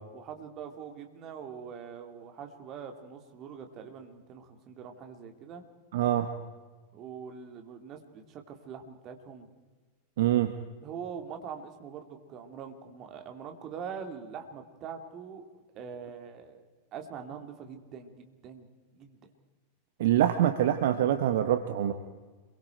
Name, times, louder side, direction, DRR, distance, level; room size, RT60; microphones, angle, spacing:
voice 1, 0.1-5.6 6.9-9.5 10.8-15.5 15.7-16.6 16.9-18.7 18.9-19.2, right 7 dB, 35° right, 5 dB, 2.7 m, -43 dB
voice 2, 5.9-6.3 10.2-10.5 20.0-21.9, right 11 dB, 55° right, 9 dB, 1.2 m, -25 dB
28.0 x 22.5 x 4.5 m, 1.3 s
figure-of-eight pair, 90°, 0 cm